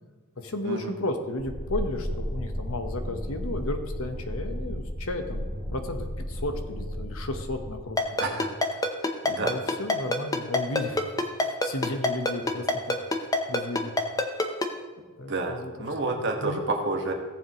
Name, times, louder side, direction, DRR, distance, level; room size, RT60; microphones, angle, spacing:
voice 1, 0.4-8.0 8.3-8.4 9.4-11.0 11.4-13.0 13.5-13.9 15.2-15.9 16.4-16.6, left 2 dB, 70° left, 6 dB, 1.1 m, -34 dB
sound 1, 1.4-7.8, equal, 10° right, 1.6 m, -34 dB
Ringtone, 8.0-14.7, left 2 dB, 15° left, 0.7 m, -24 dB
voice 2, 8.2-8.5 9.2-9.5 15.3-17.1, right 2 dB, 50° right, 2 dB, 1.4 m, -29 dB
17.0 x 7.3 x 3.0 m, 1.4 s
head